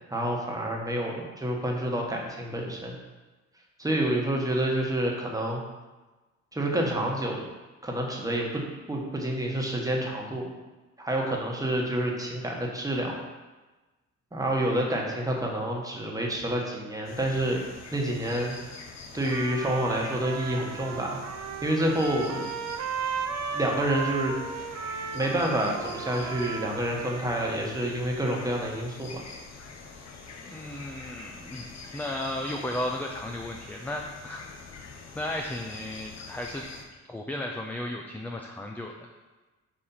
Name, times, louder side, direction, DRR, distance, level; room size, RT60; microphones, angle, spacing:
voice 1, 0.1-3.0 3.8-5.6 6.5-7.4 7.8-8.6 8.9-10.5 11.0-13.1 14.3-17.6 17.9-18.6 19.1-21.2 21.6-22.4 23.5-24.7 25.1-29.2, right 1 dB, 10° right, -1 dB, 1.3 m, -28 dB
sound 1, 17.0-36.8, left 4 dB, 60° left, 1.0 m, -45 dB
Trumpet, 19.2-27.7, right 6 dB, 65° right, 0.6 m, -36 dB
voice 2, 30.4-34.9 35.1-36.6 37.1-39.1, left 1 dB, 5° left, 1 dB, 0.5 m, -35 dB
4.8 x 4.3 x 5.6 m, 1.2 s
cardioid pair, 90°, 30 cm